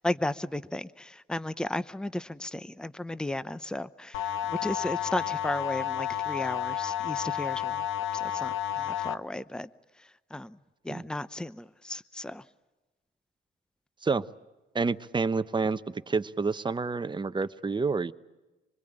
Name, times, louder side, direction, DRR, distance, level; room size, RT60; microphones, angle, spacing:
voice 1, 0.0-7.8 8.1-9.7 10.3-10.6 10.8-12.4, left 1 dB, 5° left, 0.8 m, -34 dB
sound 1, 4.1-9.1, left 11 dB, 80° left, 1.0 m, -31 dB
voice 2, 14.7-18.1, right 4 dB, 25° right, 1.0 m, -29 dB
26.5 x 21.5 x 8.9 m
cardioid pair, 90°, 20 cm